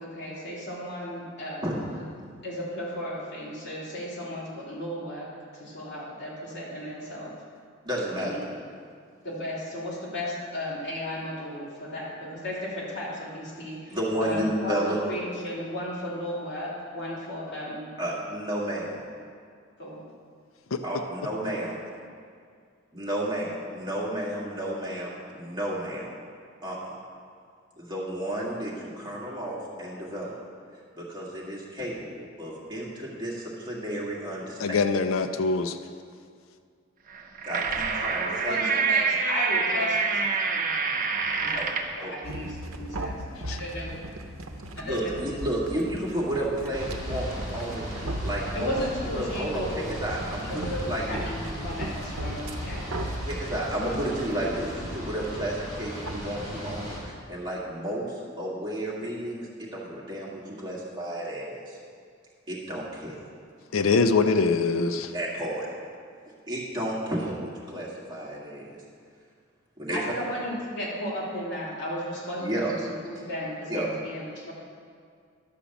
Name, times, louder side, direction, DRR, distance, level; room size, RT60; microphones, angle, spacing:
voice 1, 0.0-1.6 2.4-5.3 5.5-7.3 8.2-8.6 9.2-14.8 15.1-17.9 19.8-20.0 38.3-40.6 41.4-44.0 44.8-45.2 48.5-50.0 50.5-52.9 69.9-72.7 73.0-74.5, left 1 dB, 60° left, -6 dB, 2.9 m, -35 dB
voice 2, 7.8-8.4 13.9-15.0 18.0-19.0 20.8-21.8 22.9-26.1 26.6-27.0 27.8-30.4 30.9-34.9 37.5-38.6 41.6-41.7 42.0-42.1 44.8-48.7 49.2-51.3 52.3-52.4 53.2-61.8 62.5-63.2 65.1-65.7 66.5-68.8 69.8-70.1 72.4-72.7 73.7-73.9, right 1 dB, 20° right, -5 dB, 1.9 m, -32 dB
voice 3, 34.6-35.8 43.4-43.6 63.7-65.1, left 4 dB, 75° left, 8 dB, 0.5 m, -23 dB
sound 1, 37.1-42.0, right 5 dB, 45° right, 0.7 m, -26 dB
sound 2, 42.2-56.3, right 1 dB, 85° right, 0.8 m, -37 dB
sound 3, 46.7-57.0, equal, 20° left, 3.0 m, -37 dB
11.5 x 5.0 x 7.0 m, 2.2 s
head